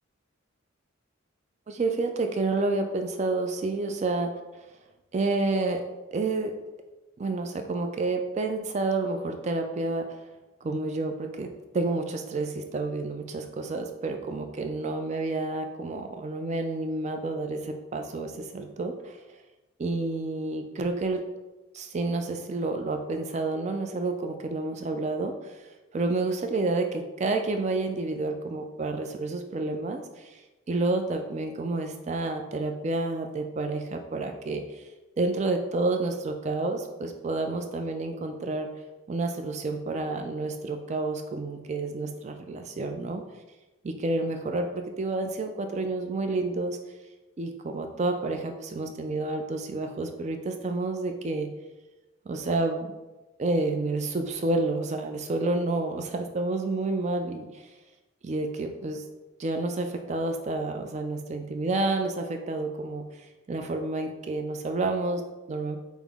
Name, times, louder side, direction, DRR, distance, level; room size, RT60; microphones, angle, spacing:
voice 1, 1.7-4.3 5.1-5.8 6.1-6.6 7.2-10.1 10.6-19.2 19.8-21.2 21.7-25.7 25.9-30.4 30.7-34.8 35.2-38.7 39.1-43.2 43.8-46.8 47.4-51.5 52.3-52.9 53.4-57.7 58.2-59.0 59.4-65.2 65.5-65.8, right 2 dB, 35° right, 5 dB, 0.3 m, -29 dB
5.5 x 2.0 x 3.5 m, 1.1 s
head